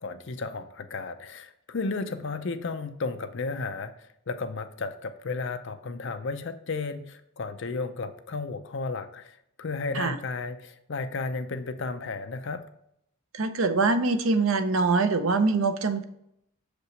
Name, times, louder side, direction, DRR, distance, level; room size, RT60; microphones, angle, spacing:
voice 1, 0.0-3.9 4.3-12.6, left 3 dB, 55° left, 9 dB, 0.5 m, -33 dB
voice 2, 13.3-16.0, right 3 dB, 65° right, 10 dB, 0.6 m, -24 dB
6.9 x 5.1 x 3.2 m, 0.77 s
head